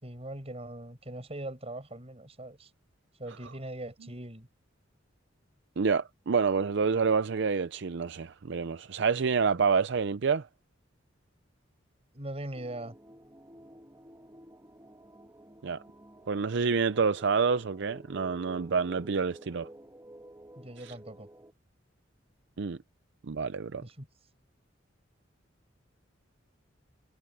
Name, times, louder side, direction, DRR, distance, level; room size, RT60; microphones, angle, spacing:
voice 1, 0.0-2.7 3.2-4.5 12.1-12.9 20.6-21.3 23.8-24.1, right 1 dB, 35° right, 5.3 m, -41 dB
voice 2, 5.8-10.5 15.6-15.8 16.3-19.7 20.8-20.9 22.6-22.8 23.2-23.8, right 5 dB, 65° right, 0.5 m, -28 dB
sound 1, 12.5-21.5, right 1 dB, 15° right, 2.3 m, -52 dB
head